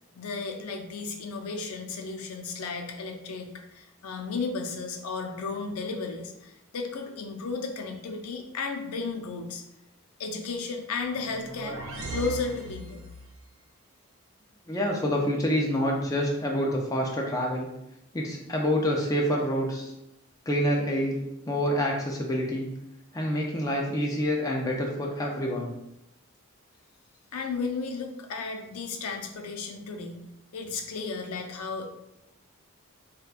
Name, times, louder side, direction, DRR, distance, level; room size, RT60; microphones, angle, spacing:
voice 1, 0.1-9.6 10.2-11.8 12.1-13.0 27.3-30.2 30.5-31.9, left 4 dB, 85° left, 4 dB, 0.5 m, -34 dB
sound 1, 11.1-13.4, right 2 dB, 65° right, 0.6 m, -38 dB
voice 2, 14.7-17.7 18.1-19.9 20.5-22.7 23.1-25.7, equal, 15° left, -1 dB, 0.4 m, -27 dB
4.6 x 2.2 x 2.4 m, 0.87 s
head